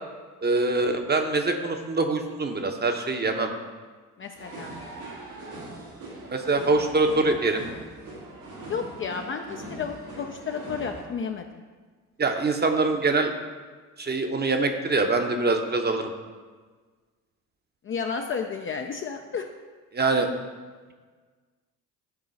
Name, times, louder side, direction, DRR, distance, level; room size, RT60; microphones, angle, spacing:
voice 1, 0.4-3.5 6.3-7.6 12.2-13.3 14.0-16.1 19.9-20.3, right 3 dB, 20° right, 5 dB, 0.8 m, -24 dB
voice 2, 4.2-4.8 8.7-11.6 17.8-19.5, left 6 dB, 30° left, 4 dB, 0.5 m, -32 dB
sound 1, 4.3-11.0, right 2 dB, 90° right, 2.1 m, -41 dB
9.6 x 3.8 x 4.1 m, 1.4 s
hypercardioid pair, 55°, 45 cm